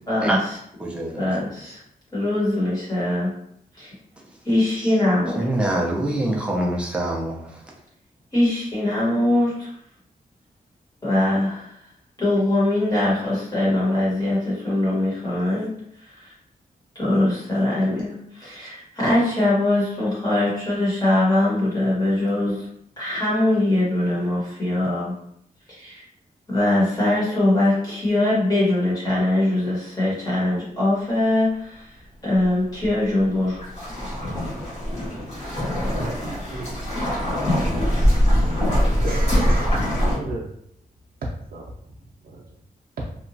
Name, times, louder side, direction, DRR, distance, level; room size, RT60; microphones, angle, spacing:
voice 1, 0.1-0.4 1.2-1.8 2.1-3.3 3.7-3.9 4.4-5.4 8.3-9.7 11.0-11.7 12.2-15.7 16.9-18.1 18.9-22.7 23.0-25.1 25.7-26.0 26.5-32.0 32.2-33.6, left 1 dB, 25° left, -7 dB, 1.1 m, -22 dB
voice 2, 0.8-1.5 4.8-4.9 5.3-7.6, right 1 dB, 5° right, -3 dB, 0.5 m, -25 dB
sound 1, 32.4-32.5 32.8-40.2, equal, 45° left, 1.3 m, -22 dB
voice 3, 36.1-36.9 37.4-38.7 39.0-40.6 41.5-42.0 42.2-42.4 43.0-43.1, right 2 dB, 70° right, -4 dB, 0.5 m, -35 dB
2.9 x 2.2 x 2.6 m, 0.70 s
wide cardioid pair, 165°, 16 cm